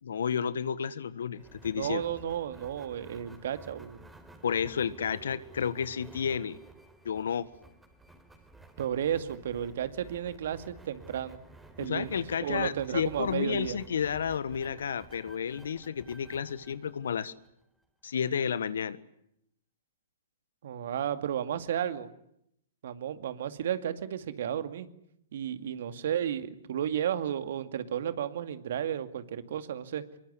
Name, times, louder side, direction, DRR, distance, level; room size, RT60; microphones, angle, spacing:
voice 1, 0.0-2.0 4.4-6.6 7.0-7.5 11.8-17.3 18.0-19.0, left 7 dB, 70° left, 1.5 m, -31 dB
sound 1, 1.3-17.8, right 3 dB, 5° right, 4.1 m, -53 dB
voice 2, 1.8-4.0 8.8-11.4 11.8-13.8 20.6-22.1 22.8-24.9 25.3-30.0, right 9 dB, 60° right, 2.3 m, -33 dB
25.0 x 23.0 x 9.7 m
hypercardioid pair, 120°, 0 cm